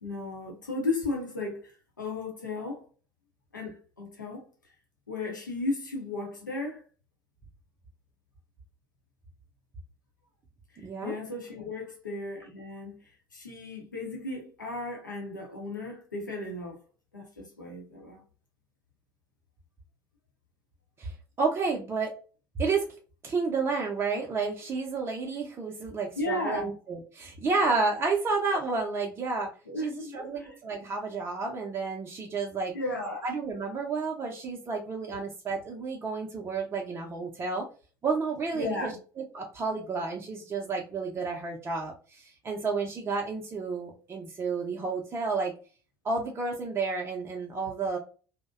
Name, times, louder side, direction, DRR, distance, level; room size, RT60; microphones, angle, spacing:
voice 1, 0.0-1.7 2.0-2.8 3.5-4.4 5.1-6.8 10.7-16.8 17.1-18.2 26.2-26.7 29.7-30.6 32.7-33.2 38.5-39.0, left 2 dB, 85° left, 0.7 m, -35 dB
voice 2, 10.8-11.1 21.0-22.1 22.6-22.8 23.2-29.5 29.8-32.7 33.2-37.7 38.0-45.5 46.0-48.0, right 4 dB, 25° right, 0.5 m, -31 dB
2.5 x 2.1 x 2.3 m
figure-of-eight pair, 70°, 10 cm